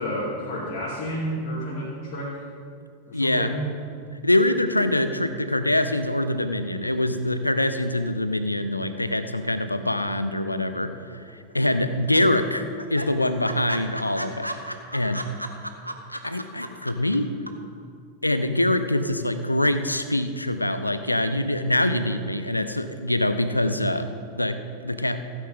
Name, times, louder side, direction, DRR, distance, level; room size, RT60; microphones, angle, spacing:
voice 1, 0.0-2.4 3.1-3.7, equal, 45° left, -8 dB, 2.7 m, -30 dB
voice 2, 3.1-3.5 4.2-10.9 11.5-12.6 12.9-14.5 14.9-15.2 16.2-17.4 18.2-25.2, left 1 dB, 85° left, 10 dB, 0.6 m, -24 dB
sound 1, 11.1-11.7 12.0-12.1 12.4-12.5 12.8-17.2 17.5-17.6, equal, 90° right, 0.7 m, -34 dB
16.0 x 9.4 x 3.6 m, 2.3 s
figure-of-eight pair, 90°, 0 cm